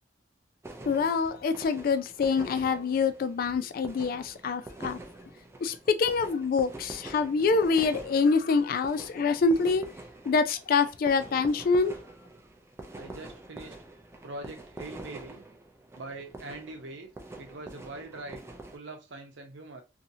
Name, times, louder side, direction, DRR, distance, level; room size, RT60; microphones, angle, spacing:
sound 1, 0.6-18.8, right 2 dB, 15° right, 0.4 m, -46 dB
voice 1, 0.9-5.0 5.6-9.8 10.3-11.9, left 4 dB, 50° left, 0.3 m, -26 dB
voice 2, 12.9-13.7 14.2-15.4 16.0-17.1 17.4-18.4 18.7-19.8, right 2 dB, 80° right, 0.7 m, -42 dB
2.7 x 2.7 x 2.7 m
head